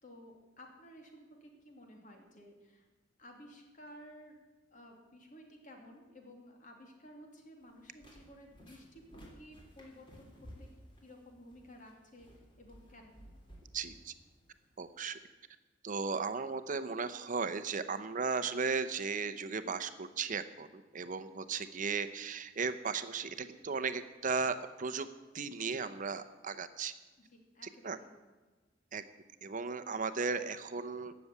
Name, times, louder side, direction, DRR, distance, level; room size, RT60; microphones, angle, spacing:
voice 1, 0.0-2.9 3.2-4.4 4.7-10.7 11.0-12.3 12.6-13.2 27.2-28.1, equal, 45° left, 2 dB, 2.8 m, -55 dB
sound 1, 7.6-15.0, equal, 25° left, 3.2 m, -57 dB
voice 2, 13.7-14.1 14.8-15.2 15.8-25.1 25.3-26.9 27.8-28.0 28.9-29.0 29.4-31.1, right 5 dB, 45° right, 11 dB, 0.8 m, -36 dB
15.5 x 7.0 x 9.6 m, 1.3 s
head